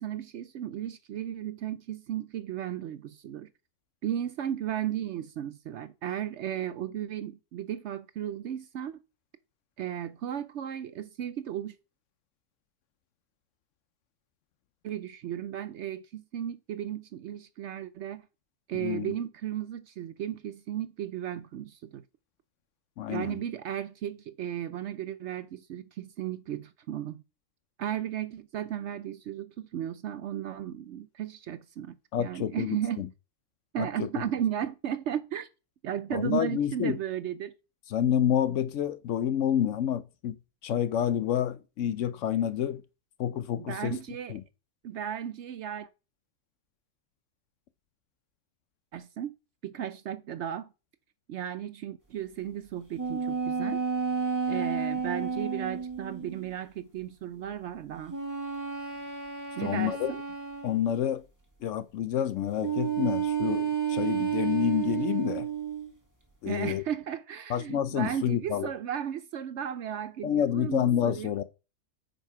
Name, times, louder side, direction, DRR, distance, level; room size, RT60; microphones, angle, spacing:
voice 1, 0.0-3.5 4.0-9.0 9.8-11.7 14.8-18.3 18.7-22.0 23.1-27.2 27.8-33.1 33.7-35.5 35.8-37.5 43.5-44.4 44.8-45.9 48.9-49.3 49.6-50.7 51.3-53.8 54.5-58.2 59.6-60.2 66.4-71.3, right 10 dB, 65° right, 0.7 m, -35 dB
voice 2, 18.8-19.1 23.0-23.4 32.1-33.1 33.8-34.1 36.1-37.0 37.9-40.4 40.6-42.8 43.2-44.0 44.3-44.4 59.6-60.1 60.6-61.2 61.6-65.5 66.4-66.8 67.5-68.7 70.2-71.4, left 10 dB, 70° left, 0.8 m, -28 dB
sound 1, 53.0-56.5 58.1-61.0 62.6-65.9, right 7 dB, 15° right, 1.6 m, -31 dB
8.9 x 5.3 x 4.7 m
omnidirectional pair, 1.5 m